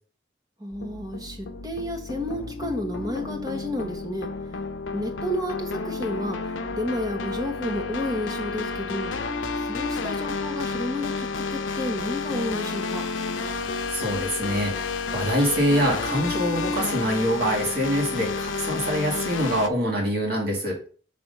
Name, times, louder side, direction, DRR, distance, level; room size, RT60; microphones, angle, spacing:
voice 1, 0.6-4.3 4.9-9.1 9.5-13.0, left 1 dB, 20° right, 4 dB, 1.1 m, -31 dB
sound 1, 0.7-19.7, left 4 dB, 85° left, 0.6 m, -31 dB
voice 2, 13.9-20.8, equal, 55° right, -1 dB, 2.2 m, -25 dB
6.0 x 3.4 x 5.3 m, 0.41 s
head